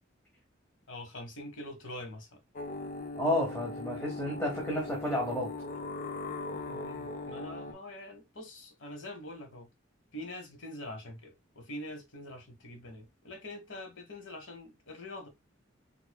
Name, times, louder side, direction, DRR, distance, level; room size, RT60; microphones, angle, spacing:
voice 1, 0.9-2.4 6.5-9.7 10.1-15.3, left 1 dB, 70° left, 1.2 m, -44 dB
sound 1, 2.6-7.7, left 2 dB, 45° left, 0.6 m, -39 dB
voice 2, 3.2-5.5, left 1 dB, 10° left, 1.0 m, -31 dB
4.5 x 3.0 x 2.2 m
head